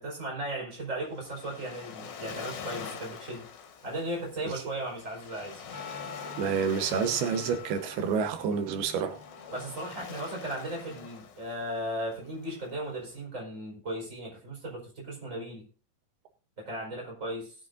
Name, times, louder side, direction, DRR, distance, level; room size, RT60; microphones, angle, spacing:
voice 1, 0.0-3.5 3.8-5.6 9.5-15.7 16.6-17.5, right 1 dB, 20° right, -2 dB, 5.0 m, -36 dB
Waves surf, 0.8-13.2, left 6 dB, 75° left, 3.0 m, -45 dB
sound 1, 5.7-11.1, left 4 dB, 55° left, 0.7 m, -47 dB
voice 2, 6.4-9.2, right 6 dB, 85° right, 7 dB, 3.1 m, -28 dB
20.0 x 8.2 x 2.6 m, 0.38 s
omnidirectional pair, 4.3 m